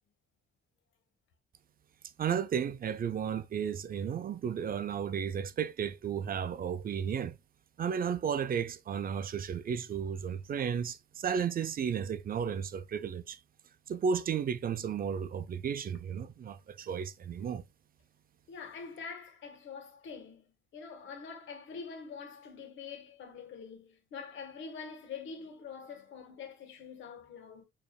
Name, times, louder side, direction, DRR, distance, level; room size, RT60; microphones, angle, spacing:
voice 1, 2.2-7.4 7.8-13.4 13.9-17.6, right 7 dB, 45° right, 0.6 m, -33 dB
voice 2, 18.5-20.5 20.7-27.6, left 5 dB, 75° left, 1.7 m, -45 dB
6.6 x 3.2 x 2.3 m
cardioid pair, 90°, 20 cm